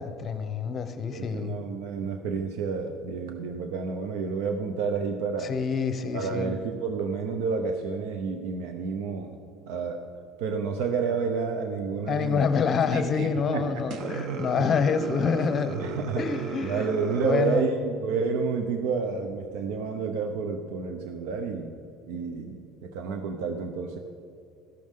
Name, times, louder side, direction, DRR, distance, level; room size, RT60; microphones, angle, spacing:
voice 1, 0.0-1.6 5.4-6.5 12.1-15.8 16.2-16.9 17.1-17.7, left 6 dB, 30° left, 11 dB, 0.6 m, -27 dB
voice 2, 1.1-5.5 6.1-9.4 9.7-10.1 10.4-12.5 13.5-13.8 14.1-14.7 15.7-21.8 22.1-24.0, right 5 dB, 85° right, 6 dB, 0.7 m, -30 dB
sound 1, 12.8-13.3 13.9-17.3, right 3 dB, 55° right, 1.0 m, -36 dB
13.5 x 12.0 x 3.7 m, 2.5 s
cardioid pair, 160°, 0 cm